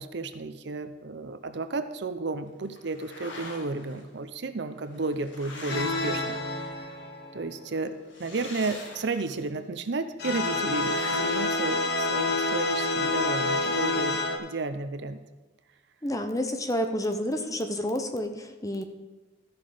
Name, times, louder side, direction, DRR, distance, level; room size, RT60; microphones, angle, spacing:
voice 1, 0.0-6.8 7.3-15.2, right 3 dB, 65° right, 10 dB, 0.6 m, -33 dB
sound 1, 2.8-4.0 4.8-7.0 8.0-9.5 10.5-12.4, left 2 dB, 90° left, 1.8 m, -44 dB
sound 2, 5.7-7.6 10.2-14.4, left 2 dB, 60° left, 1.2 m, -28 dB
voice 2, 16.0-18.8, left 1 dB, 20° left, 6 dB, 0.7 m, -29 dB
13.5 x 5.9 x 5.0 m, 1.2 s
head